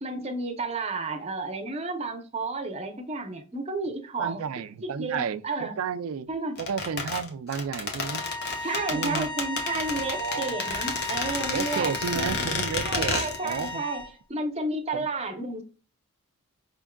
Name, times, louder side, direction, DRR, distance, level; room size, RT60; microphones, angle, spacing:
voice 1, 0.0-4.4 4.8-5.8 6.3-6.6 8.6-12.5 12.8-14.0 14.3-15.6, right 2 dB, 30° right, 0.7 m, -32 dB
voice 2, 4.2-6.3 6.6-8.2 8.9-9.3 10.1-10.6 11.5-13.8 14.9-15.1, right 6 dB, 70° right, 0.4 m, -32 dB
sound 1, 6.6-13.7 14.0-14.1, left 4 dB, 50° left, 0.9 m, -31 dB
sound 2, 8.0-14.1, left 1 dB, 20° left, 0.5 m, -36 dB
5.2 x 3.5 x 2.2 m
head